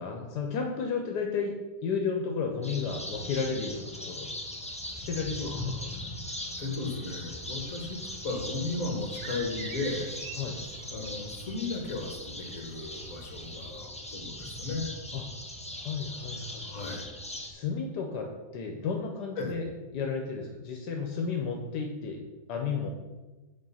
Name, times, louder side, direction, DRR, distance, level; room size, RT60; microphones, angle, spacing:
voice 1, 0.0-4.3 4.9-6.2 10.4-10.6 15.1-15.2 15.7-16.7 17.4-19.7 19.9-22.2 22.5-22.9, left 5 dB, 80° left, 2 dB, 1.4 m, -33 dB
sound 1, 2.6-17.5, left 1 dB, 5° left, 0.5 m, -40 dB
voice 2, 5.4-5.9 6.6-10.1 10.9-15.0 16.6-17.1 19.4-19.6, left 3 dB, 55° left, 2 dB, 1.9 m, -35 dB
sound 2, 7.4-13.9, right 7 dB, 75° right, 1.2 m, -49 dB
7.8 x 5.0 x 5.6 m, 1.2 s
omnidirectional pair, 1.8 m